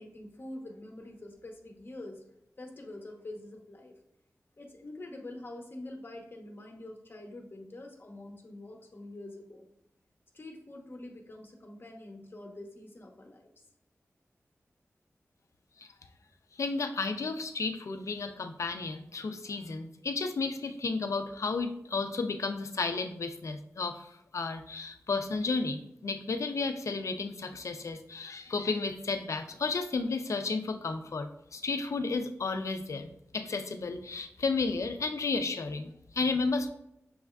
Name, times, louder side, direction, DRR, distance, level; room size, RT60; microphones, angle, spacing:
voice 1, 0.0-2.2 2.6-4.0 4.6-9.7 10.3-13.5, left 1 dB, 45° left, 3 dB, 0.8 m, -45 dB
voice 2, 16.6-36.7, left 4 dB, 70° left, 8 dB, 0.4 m, -33 dB
6.2 x 3.4 x 2.3 m, 0.80 s
wide cardioid pair, 65°, 5 cm